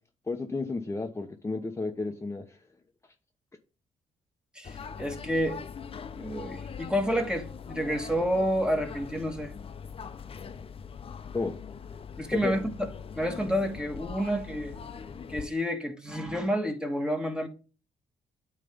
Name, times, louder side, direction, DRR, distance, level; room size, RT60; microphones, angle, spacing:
voice 1, 0.3-2.6 11.3-11.5 12.3-12.5, left 3 dB, 20° left, 0.9 m, -32 dB
sound 1, 4.6-15.5, left 6 dB, 45° left, 0.9 m, -42 dB
voice 2, 4.6-5.6 6.2-9.5 12.2-12.9 13.1-14.7 15.3-17.5, equal, 5° right, 1.7 m, -29 dB
9.0 x 3.4 x 5.2 m
cardioid pair, 70°, 13 cm